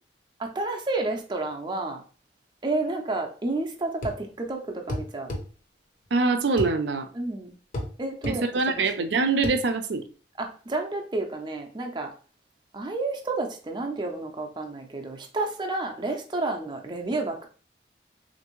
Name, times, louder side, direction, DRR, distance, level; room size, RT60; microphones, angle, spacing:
voice 1, 0.4-2.0 2.6-5.3 7.1-7.5 8.0-8.4 8.8-9.1 10.4-12.1 12.7-17.5, right 2 dB, 25° right, 2 dB, 0.5 m, -30 dB
sound 1, 4.0-4.2 4.9-5.5 6.6-6.7 7.7-7.9 8.2-8.4 9.4-9.6, left 1 dB, 45° left, 0.7 m, -31 dB
voice 2, 6.1-7.1 8.3-10.0, right 3 dB, 80° right, 8 dB, 0.5 m, -24 dB
3.4 x 2.6 x 3.0 m, 0.39 s
head